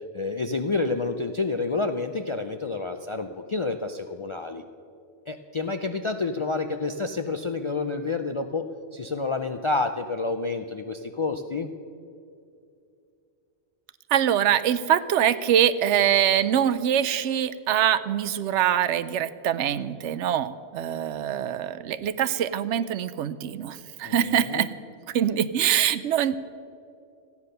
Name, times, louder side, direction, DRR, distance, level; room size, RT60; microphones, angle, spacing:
voice 1, 0.1-4.6 5.3-8.6 8.9-11.7 24.1-24.7 26.3-26.4, left 3 dB, 55° left, 7 dB, 0.3 m, -29 dB
voice 2, 14.1-24.7 25.1-26.4, right 10 dB, 85° right, 14 dB, 0.9 m, -24 dB
14.5 x 9.6 x 6.6 m, 2.5 s
omnidirectional pair, 1.2 m